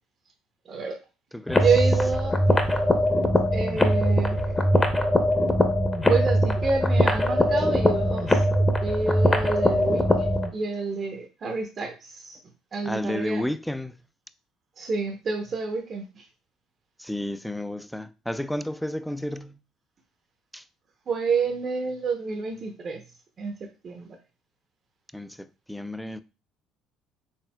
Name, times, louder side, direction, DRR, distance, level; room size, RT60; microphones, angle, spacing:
voice 1, 0.7-1.0 1.6-2.4 3.5-4.7 6.1-8.4 8.8-12.4 12.7-13.4 14.8-16.2 21.1-23.0 23.4-23.6 23.8-24.2, right 4 dB, 45° right, 0.7 m, -28 dB
voice 2, 1.3-1.6 12.8-13.9 17.0-19.6 20.5-20.6 25.1-26.2, left 1 dB, ahead, 0.3 m, -32 dB
sound 1, 1.5-10.5, equal, 20° left, 0.7 m, -22 dB
4.3 x 3.5 x 2.2 m
supercardioid pair, 80°, 0 cm